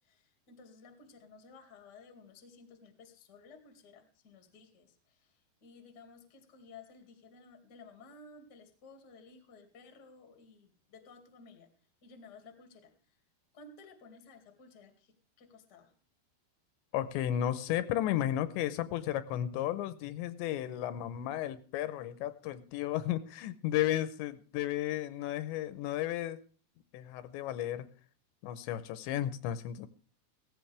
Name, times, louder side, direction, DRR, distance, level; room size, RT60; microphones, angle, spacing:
voice 1, 0.0-11.7 12.0-13.2 13.5-15.9, left 4 dB, 35° left, 1.8 m, -55 dB
voice 2, 16.9-26.4 26.9-27.9 28.4-29.9, left 12 dB, 85° left, 3.1 m, -33 dB
17.0 x 15.0 x 3.4 m
omnidirectional pair, 5.2 m